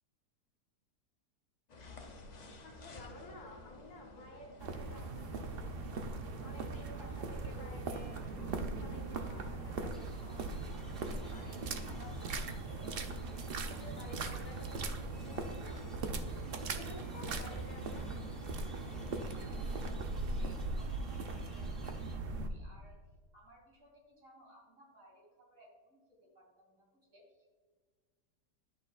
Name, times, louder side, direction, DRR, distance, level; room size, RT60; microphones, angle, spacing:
sound 1, 1.7-19.9, left 2 dB, 50° left, 0.5 m, -55 dB
voice 1, 2.6-8.2 8.8-16.0 16.5-18.1, left 1 dB, 65° left, -1 dB, 2.0 m, -53 dB
sound 2, 4.6-22.5, right 3 dB, 70° right, 0.5 m, -39 dB
sound 3, 9.9-22.2, left 1 dB, ahead, 0.9 m, -62 dB
voice 2, 19.2-23.0 23.3-27.6, equal, 50° right, -2 dB, 3.0 m, -61 dB
11.0 x 6.4 x 2.4 m, 1.5 s
omnidirectional pair, 1.8 m